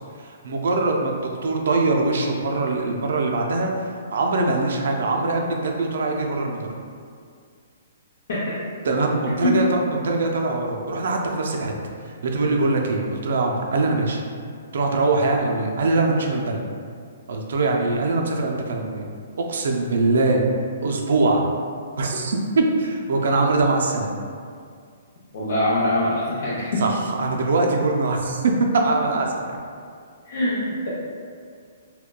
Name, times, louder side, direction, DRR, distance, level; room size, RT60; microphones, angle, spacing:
voice 1, 0.2-6.7 8.8-11.7 12.1-14.2 14.7-16.6 17.3-19.1 19.4-20.4 20.8-21.4 22.0-22.4 22.8-24.2 26.8-29.6, right 3 dB, 70° right, 1 dB, 0.4 m, -22 dB
voice 2, 25.3-26.8 30.3-30.9, left 1 dB, 65° left, -9 dB, 0.6 m, -23 dB
3.6 x 2.2 x 2.2 m, 2.2 s
hypercardioid pair, 130°, 0 cm